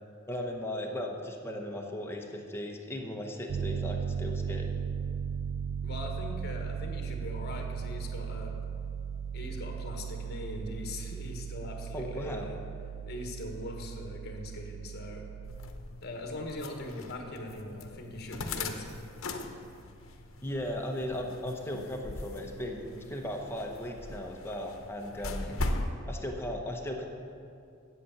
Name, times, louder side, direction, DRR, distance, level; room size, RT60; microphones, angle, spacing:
voice 1, 0.3-4.7 11.9-12.5 20.4-25.5 26.1-27.0, left 1 dB, 10° left, 1 dB, 1.0 m, -37 dB
Piano, 3.5-15.7, right 7 dB, 75° right, 0.4 m, -37 dB
voice 2, 5.8-8.5 9.3-12.6 13.0-15.3 16.0-18.9 25.1-25.6, left 1 dB, 50° left, 2 dB, 1.4 m, -41 dB
sound 1, 15.4-25.9, left 2 dB, 75° left, 0.8 m, -40 dB
8.3 x 7.9 x 7.1 m, 2.5 s
head